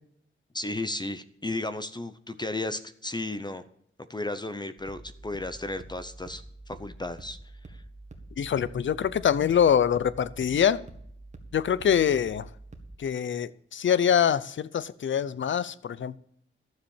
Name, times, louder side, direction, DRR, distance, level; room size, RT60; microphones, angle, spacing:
voice 1, 0.5-3.6 4.1-7.4 7.7-7.8, left 2 dB, 20° left, 0.7 m, -34 dB
sound 1, 4.8-12.9, right 2 dB, 35° right, 1.8 m, -47 dB
voice 2, 8.4-10.8 11.5-12.5 13.0-16.2, left 8 dB, 65° left, 0.6 m, -24 dB
12.5 x 7.2 x 7.1 m
wide cardioid pair, 135°, 21 cm